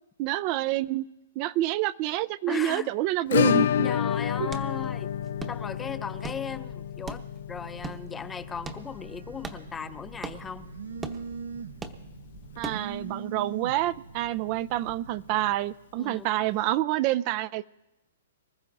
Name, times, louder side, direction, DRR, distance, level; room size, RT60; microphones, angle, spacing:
voice 1, 0.2-1.1 1.4-3.9 12.6-17.7, right 15 dB, 40° right, 18 dB, 0.4 m, -28 dB
voice 2, 2.5-2.9 3.8-5.1 5.5-7.2 7.5-10.7 16.0-16.3, left 6 dB, 15° left, 13 dB, 0.6 m, -37 dB
Acoustic guitar / Strum, 3.3-11.9 12.2-12.3 12.6-12.7 13.0-13.1 15.2-15.3 16.4-16.5, left 9 dB, 70° left, 0.4 m, -30 dB
sound 1, 4.1-13.1, right 3 dB, 15° right, 0.9 m, -43 dB
Telephone, 7.5-15.5, right 5 dB, 85° right, 0.7 m, -42 dB
25.0 x 14.0 x 2.6 m, 0.97 s
hypercardioid pair, 140°, 0 cm